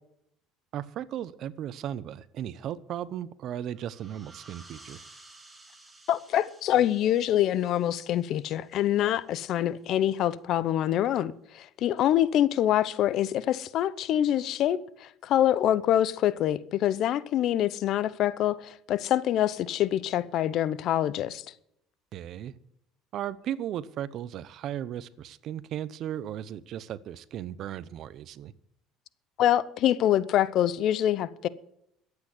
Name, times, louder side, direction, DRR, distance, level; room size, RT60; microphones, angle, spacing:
voice 1, 0.7-5.0 22.1-22.5 23.1-28.5, right 10 dB, 55° right, 0.8 m, -36 dB
sound 1, 3.7-9.1, right 2 dB, 15° right, 3.1 m, -54 dB
voice 2, 6.1-21.4 29.4-31.5, left 11 dB, 60° left, 0.8 m, -25 dB
13.0 x 8.8 x 7.9 m
supercardioid pair, 100°, 0 cm